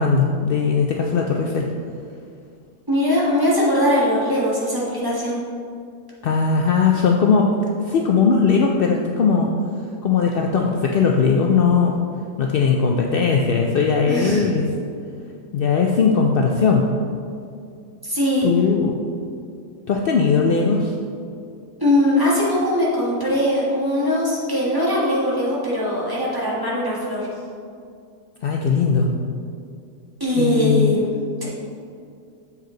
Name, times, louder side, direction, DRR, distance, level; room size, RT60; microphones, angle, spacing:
voice 1, 0.0-1.7 6.2-7.6 7.8-9.5 10.0-12.0 12.4-14.7 15.5-16.9 18.4-19.0 19.9-20.9 28.4-29.1 30.4-31.0, left 5 dB, 75° left, 1 dB, 0.5 m, -19 dB
voice 2, 2.9-5.4 14.1-14.4 18.0-18.5 21.8-27.3 30.2-31.1 31.4-31.5, left 1 dB, 15° right, -7 dB, 1.6 m, -20 dB
7.3 x 5.6 x 3.8 m, 2.4 s
omnidirectional pair, 1.5 m